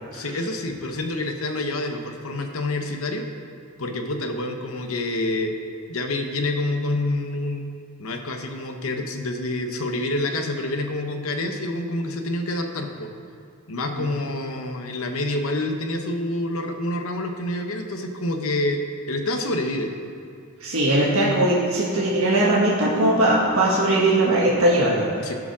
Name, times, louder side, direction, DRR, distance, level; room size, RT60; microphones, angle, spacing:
voice 1, 0.1-3.3 3.8-5.6 5.9-7.7 8.0-13.1 13.7-19.9 25.2-25.3, left 2 dB, 75° left, 4 dB, 0.9 m, -27 dB
voice 2, 20.6-25.3, right 1 dB, 75° right, -5 dB, 1.5 m, -20 dB
12.0 x 5.1 x 6.0 m, 2.5 s
head